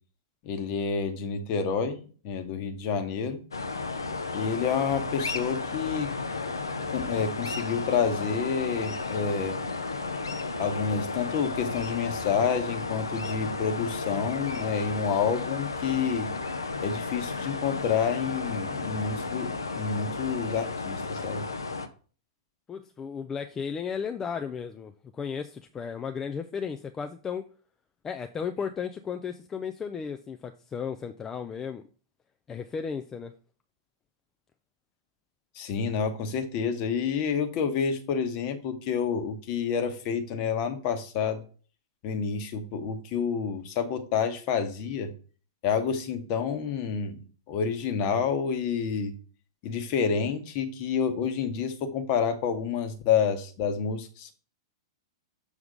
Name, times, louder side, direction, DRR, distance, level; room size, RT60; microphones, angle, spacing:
voice 1, 0.4-3.4 4.3-6.1 6.9-9.6 10.6-16.3 16.8-21.4 35.5-41.4 42.0-45.1 45.6-47.2 47.5-49.1 49.6-54.3, left 6 dB, 40° left, 8 dB, 1.1 m, -29 dB
sound 1, 3.5-21.9, left 3 dB, 75° left, 0.7 m, -33 dB
voice 2, 22.7-27.4 28.0-31.8 32.5-33.3, left 6 dB, 15° left, 6 dB, 0.4 m, -34 dB
6.8 x 3.5 x 5.1 m, 0.39 s
figure-of-eight pair, 100°, 2 cm